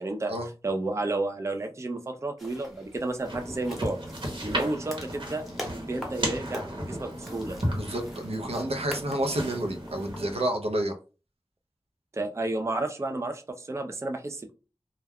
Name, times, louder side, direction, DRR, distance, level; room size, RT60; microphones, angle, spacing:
voice 1, 0.0-0.3 0.6-4.0 4.4-7.6 12.1-14.5, right 2 dB, 30° right, 0.4 m, -32 dB
sound 1, 2.4-10.3, equal, ahead, 0.9 m, -44 dB
sound 2, 3.2-10.4, equal, 55° right, 1.0 m, -35 dB
voice 2, 7.7-11.0, right 1 dB, 75° right, 0.6 m, -29 dB
2.3 x 2.2 x 3.4 m
wide cardioid pair, 65°, 10 cm